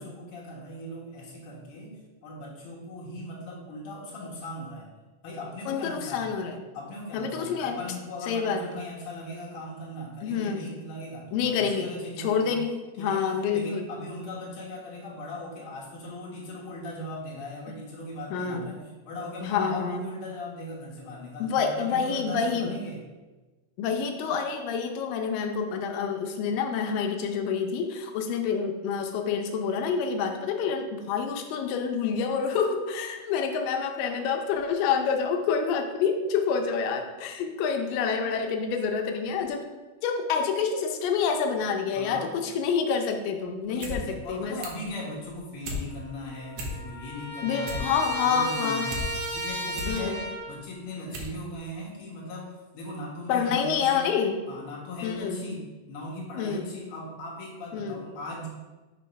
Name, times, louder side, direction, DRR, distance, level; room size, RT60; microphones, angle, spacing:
voice 1, 0.0-4.9 5.2-6.3 6.7-12.6 13.0-23.0 41.9-42.4 43.7-54.1 54.5-58.5, left 1 dB, 50° left, -4 dB, 2.1 m, -39 dB
voice 2, 5.7-6.6 7.1-7.8 8.3-8.6 10.2-10.7 11.3-13.8 18.3-18.8 19.4-20.1 21.4-22.8 23.8-39.7 40.0-44.6 47.4-48.9 49.9-50.2 53.3-54.4 55.0-55.4 56.4-56.7 57.7-58.0, left 6 dB, 90° left, 4 dB, 2.3 m, -28 dB
sound 1, 43.6-44.0 44.3-44.9 45.3-45.8 46.2-46.3 46.5-47.1 47.4-49.1 49.5-50.0 50.5-50.6 51.1-51.4 51.7-51.8, left 1 dB, 80° right, 2.6 m, -35 dB
Trumpet, 45.9-46.0 46.2-50.6, equal, 45° right, 0.7 m, -35 dB
6.5 x 3.8 x 5.2 m, 1.2 s
omnidirectional pair, 3.8 m